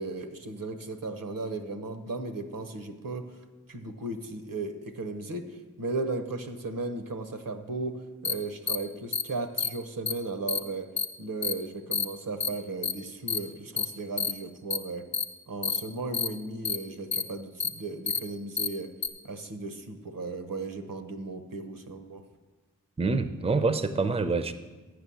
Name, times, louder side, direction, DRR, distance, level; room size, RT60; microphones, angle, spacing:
voice 1, 0.0-3.4 3.7-10.9 11.2-15.0 15.5-18.9 19.2-22.2, right 3 dB, 75° right, 7 dB, 0.9 m, -36 dB
sound 1, 8.2-8.3 8.7-8.8 9.1-9.2 9.6-9.7 10.1-10.2 10.5-10.6 11.0-11.1 11.4-11.5 11.9-12.1 12.4-12.5 12.8-12.9 13.3-13.4 13.8-13.9 14.2-14.3 14.7-14.8 15.1-15.2 15.6-15.8 16.1-16.3 16.7-16.8 17.1-17.2 17.6-17.7 18.1-18.2 18.6-18.7 19.0-19.1, left 6 dB, 55° left, 0.8 m, -28 dB
voice 2, 23.0-24.5, right 3 dB, 20° right, 11 dB, 0.5 m, -26 dB
7.9 x 6.0 x 7.0 m, 1.3 s
wide cardioid pair, 45°, 33 cm